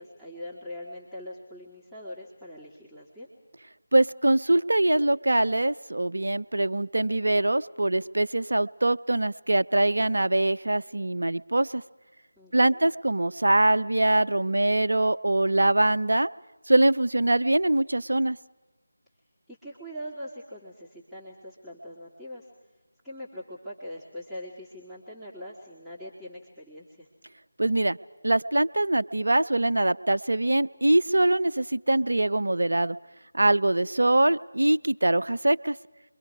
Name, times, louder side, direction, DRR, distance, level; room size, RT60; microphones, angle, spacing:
voice 1, 0.0-3.3 12.4-12.8 19.5-22.5 23.0-27.1, equal, ahead, -11 dB, 2.2 m, -42 dB
voice 2, 3.9-11.8 12.5-16.3 16.7-18.4 27.6-28.0 28.2-33.0 33.3-35.8, right 1 dB, 65° right, 13 dB, 0.7 m, -23 dB
29.5 x 23.5 x 4.8 m, 1.2 s
figure-of-eight pair, 160°, 0 cm